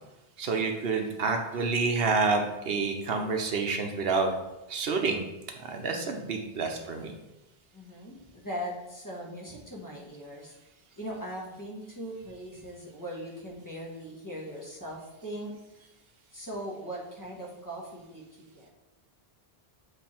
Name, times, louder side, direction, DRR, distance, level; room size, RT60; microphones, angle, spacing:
voice 1, 0.4-4.3 4.7-5.2 5.5-7.1, right 4 dB, 70° right, 4 dB, 0.9 m, -28 dB
voice 2, 7.7-10.5 11.0-15.5 16.3-18.7, equal, 20° left, -3 dB, 1.3 m, -40 dB
7.3 x 3.3 x 4.3 m, 0.96 s
omnidirectional pair, 1.0 m